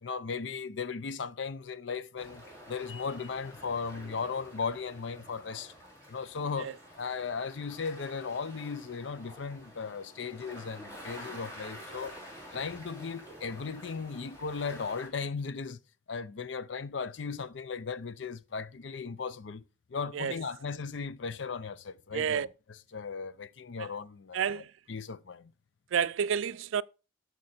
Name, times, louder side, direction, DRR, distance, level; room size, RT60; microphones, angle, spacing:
voice 1, 0.0-5.7 6.1-12.1 12.5-15.8 16.1-19.6 19.9-22.5 22.9-24.6 24.9-25.5, left 5 dB, 70° left, 0.5 m, -37 dB
sound 1, 2.2-15.1, equal, 15° left, 3.2 m, -49 dB
voice 2, 22.1-22.5 23.8-23.9 24.3-24.7 25.9-26.8, right 7 dB, 85° right, 0.4 m, -30 dB
13.0 x 4.8 x 4.2 m
head